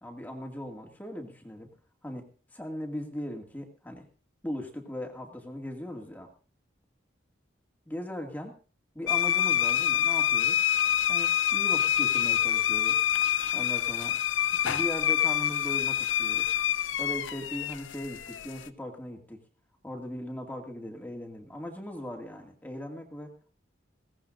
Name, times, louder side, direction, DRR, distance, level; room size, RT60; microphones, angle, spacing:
voice 1, 0.0-1.7 2.0-4.1 4.4-6.3 7.9-8.6 8.9-10.6 11.1-13.0 13.5-14.2 14.6-16.5 17.0-19.4 19.8-23.5, left 1 dB, 10° left, 2 dB, 2.2 m, -39 dB
sound 1, 9.1-18.7, left 10 dB, 90° left, 0.6 m, -26 dB
21.0 x 17.5 x 2.6 m, 0.37 s
head